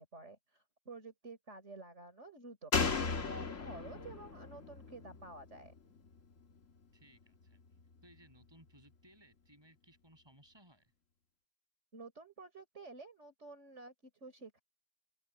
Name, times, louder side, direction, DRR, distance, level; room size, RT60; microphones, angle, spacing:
voice 1, 0.0-5.7 11.9-14.6, right 3 dB, 60° right, 4.9 m, -51 dB
Slam, 2.7-6.2 6.5-6.6, left 4 dB, 75° left, 2.1 m, -36 dB
voice 2, 3.1-3.5 6.9-7.6 8.0-10.9, right 1 dB, 20° right, 8.1 m, -62 dB
open air
omnidirectional pair, 1.3 m